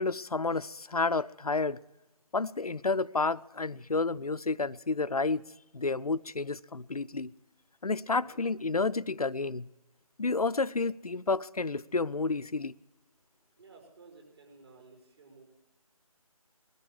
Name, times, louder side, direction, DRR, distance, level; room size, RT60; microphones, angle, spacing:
voice 1, 0.0-1.8 2.3-5.4 5.7-7.3 7.8-9.7 10.2-12.7, left 3 dB, 85° left, 0.6 m, -30 dB
voice 2, 8.1-8.5 13.6-15.4, right 4 dB, 45° right, 6.0 m, -55 dB
20.0 x 13.5 x 4.7 m
figure-of-eight pair, 160°, 19 cm